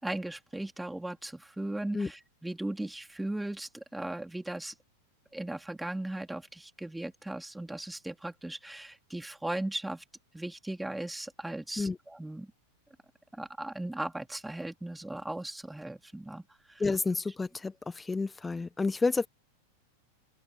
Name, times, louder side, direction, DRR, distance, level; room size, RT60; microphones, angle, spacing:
voice 1, 0.0-4.7 5.3-10.0 10.3-12.5 13.3-16.8, right 1 dB, 5° right, 3.8 m, -37 dB
voice 2, 16.8-19.3, left 4 dB, 10° left, 1.3 m, -30 dB
figure-of-eight pair, 90°, 0 cm